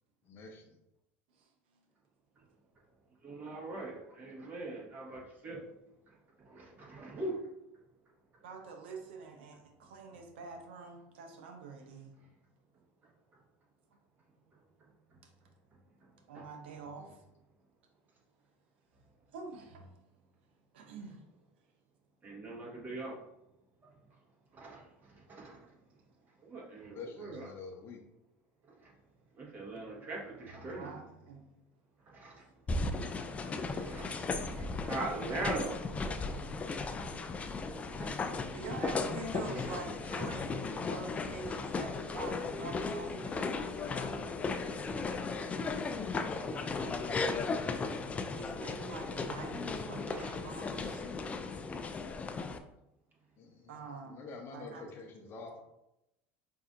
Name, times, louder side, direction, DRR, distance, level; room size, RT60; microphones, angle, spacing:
voice 1, 0.2-0.8 16.9-17.1 26.9-28.0 46.6-47.8 53.4-55.6, left 4 dB, 45° left, 3 dB, 0.8 m, -48 dB
voice 2, 3.2-5.6 6.1-7.4 16.3-16.4 22.2-23.2 24.5-25.7 26.4-27.5 28.7-28.9 29.3-31.0 32.1-32.5 33.7-36.3 38.0-38.2 40.1-40.2 50.1-50.5 50.7-51.0, right 2 dB, 35° right, -3 dB, 1.4 m, -42 dB
voice 3, 8.4-12.2 16.3-17.2 19.3-19.9 20.7-21.2 30.7-31.4 38.5-43.4 46.5-46.8 48.3-51.1 53.7-54.8, right 4 dB, 85° right, 4 dB, 0.6 m, -46 dB
sound 1, 32.7-52.6, left 4 dB, 20° left, 0.3 m, -36 dB
5.3 x 2.7 x 2.5 m, 0.87 s
supercardioid pair, 95°, 6 cm